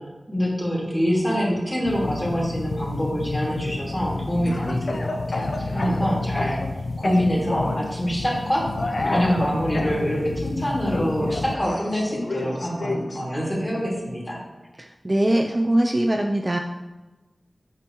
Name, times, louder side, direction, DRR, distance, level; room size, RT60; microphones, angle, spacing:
voice 1, 0.3-6.6 7.0-8.8 9.1-14.4, equal, 20° left, -4 dB, 2.5 m, -25 dB
sound 1, 1.9-11.6, left 3 dB, 80° left, 0.4 m, -31 dB
Speech / Cough, 4.5-6.7 7.0-7.8 8.7-10.0 10.9-13.2, left 2 dB, 60° left, 0.7 m, -30 dB
voice 2, 14.8-16.6, right 1 dB, 25° right, 2 dB, 0.4 m, -22 dB
8.5 x 6.0 x 3.0 m, 1.2 s
wide cardioid pair, 70°, 0 cm